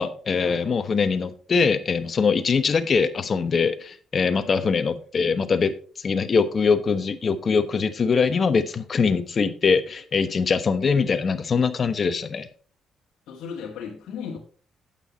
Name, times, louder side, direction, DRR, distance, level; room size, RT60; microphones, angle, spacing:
voice 1, 0.0-12.5, left 5 dB, 45° left, 11 dB, 1.1 m, -22 dB
voice 2, 13.3-14.4, left 6 dB, 75° left, -2 dB, 1.6 m, -36 dB
9.0 x 8.7 x 4.0 m, 0.42 s
cardioid pair, 90°, 0 cm